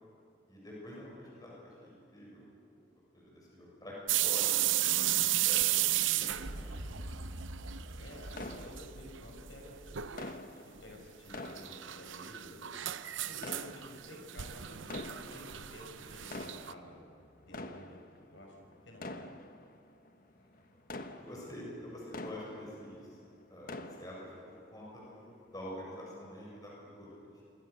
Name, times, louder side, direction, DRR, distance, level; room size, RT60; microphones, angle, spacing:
voice 1, 0.5-2.5 3.1-4.8 5.4-6.0 6.3-6.7 8.0-8.2 20.6-20.7 21.1-23.2 23.5-27.4, left 1 dB, 20° left, -4 dB, 7.3 m, -47 dB
sound 1, 4.1-7.9 8.2-8.9 9.2-9.3 9.9-10.3 11.3-16.7, right 14 dB, 90° right, 0.8 m, -33 dB
sound 2, 5.6-11.5 13.1-13.6 16.2-16.3, right 1 dB, 75° right, 1.4 m, -47 dB
voice 2, 5.8-7.1 7.9-9.8 10.6-12.7 13.2-17.0 17.4-19.2 21.2-21.7, left 1 dB, 85° left, 1 dB, 6.2 m, -52 dB
sound 3, 8.3-9.4 10.2-12.5 13.3-14.3 14.8-15.7 16.1-23.1 23.4-24.5 25.0-25.1 25.7-25.8, left 2 dB, 45° left, 1.3 m, -46 dB
28.0 x 25.5 x 6.8 m, 2.7 s
head